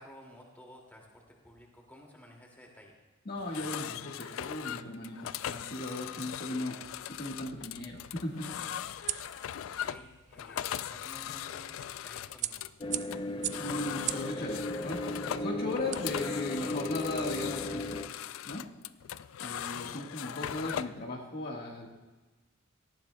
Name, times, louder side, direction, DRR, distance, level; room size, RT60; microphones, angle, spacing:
voice 1, 0.0-3.0 7.6-7.9 9.6-12.7 20.5-20.8, equal, 10° left, -2 dB, 2.3 m, -54 dB
voice 2, 3.2-6.8 7.2-8.5 13.6-18.0 18.4-18.6 19.4-21.9, left 1 dB, 50° left, -1 dB, 1.5 m, -37 dB
sound 1, 3.4-21.0, left 10 dB, 85° left, 0.3 m, -40 dB
sound 2, 6.8-16.7, right 12 dB, 35° right, 0.4 m, -43 dB
sound 3, 12.8-18.1, left 2 dB, 25° left, 0.5 m, -36 dB
18.0 x 14.0 x 2.2 m, 1.2 s
head